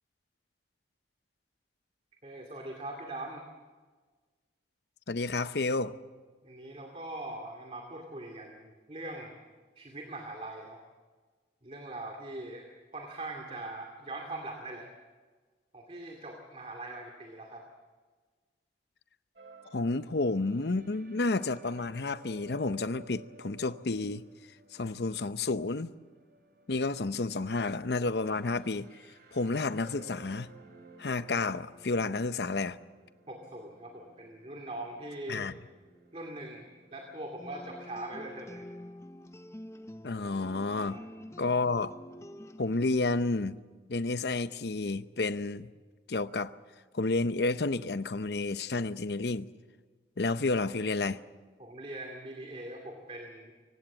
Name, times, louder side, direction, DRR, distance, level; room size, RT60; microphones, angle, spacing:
voice 1, 2.2-3.5 6.4-9.4 9.8-10.8 11.6-12.7 12.9-14.9 15.7-17.7 33.3-35.5 36.1-38.7 40.8-41.1 51.6-53.5, right 2 dB, 35° right, 2.3 m, -42 dB
voice 2, 5.1-6.0 19.7-24.2 24.7-25.9 26.7-28.9 29.3-30.5 31.0-32.8 35.3-35.5 40.0-41.0 41.4-42.0 42.6-43.6 43.9-45.7 46.1-46.5 46.9-49.5 50.2-51.2, left 3 dB, 70° left, 0.8 m, -30 dB
sound 1, 19.4-38.9, right 2 dB, 60° right, 2.7 m, -57 dB
sound 2, 37.4-43.0, left 1 dB, 15° left, 0.6 m, -47 dB
25.5 x 17.0 x 7.2 m
head